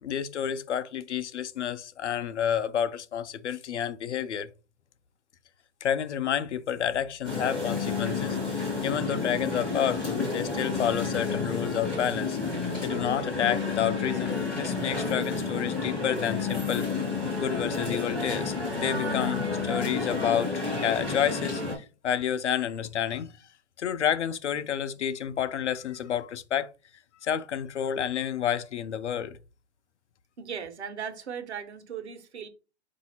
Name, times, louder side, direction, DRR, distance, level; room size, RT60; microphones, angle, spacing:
voice 1, 0.0-4.5 5.8-12.4 12.8-16.9 17.4-23.3 23.8-26.7 27.2-29.4, left 9 dB, 85° left, 0.6 m, -30 dB
sound 1, 7.2-21.7, left 4 dB, ahead, 0.4 m, -30 dB
voice 2, 30.4-32.5, right 7 dB, 75° right, 1.0 m, -37 dB
4.0 x 2.7 x 4.2 m
hypercardioid pair, 150°, 34 cm